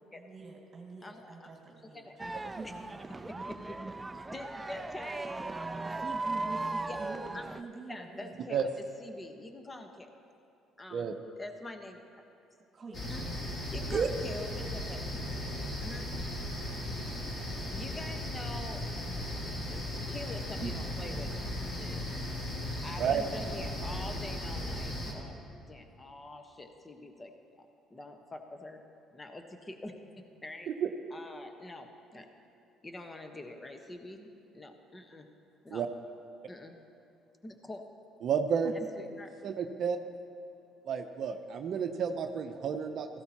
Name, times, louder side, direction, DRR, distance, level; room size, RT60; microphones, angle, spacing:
voice 1, 0.1-3.3 4.6-4.8 5.3-5.6 5.8-8.3 12.7-13.4 13.8-13.9 20.6-20.7 38.6-38.7 39.4-39.5, right 4 dB, 35° right, -1 dB, 1.9 m, -46 dB
voice 2, 1.0-1.5 1.8-2.1 2.6-2.8 3.3-3.8 4.1-5.2 6.9-7.0 7.3-7.5 7.9-10.1 10.8-12.0 13.0-13.2 13.7-15.1 15.8-16.1 17.6-18.8 19.7-22.0 22.8-25.3 25.7-27.3 27.9-28.8 29.1-29.9 30.4-30.7 31.1-32.3 32.8-34.3 34.5-35.3 35.6-35.9 36.5-36.8 37.4-37.8 38.9-39.3 39.7-39.8, left 2 dB, 25° left, 5 dB, 1.2 m, -45 dB
sound 1, 2.2-7.6, right 2 dB, 15° right, 0.4 m, -37 dB
sound 2, 12.9-25.1, left 1 dB, 45° left, 2.8 m, -37 dB
voice 3, 38.2-38.7 39.4-40.0 40.9-43.1, right 7 dB, 60° right, 7 dB, 0.6 m, -31 dB
16.0 x 14.5 x 2.9 m, 2.7 s
supercardioid pair, 70°, 0 cm